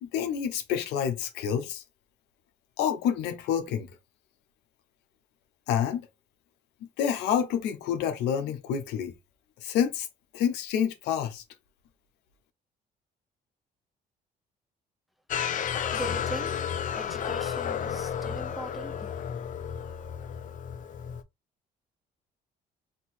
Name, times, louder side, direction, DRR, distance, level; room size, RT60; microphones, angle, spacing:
voice 1, 0.0-1.8 2.8-3.9 5.7-6.0 7.0-9.1 9.6-10.1 10.3-11.4, left 8 dB, 90° left, 0.9 m, -28 dB
sound 1, 15.3-21.2, left 8 dB, 50° left, 0.6 m, -32 dB
voice 2, 15.9-16.6 16.9-19.1, right 1 dB, ahead, 0.8 m, -40 dB
4.0 x 2.7 x 4.0 m
cardioid pair, 110°, 17 cm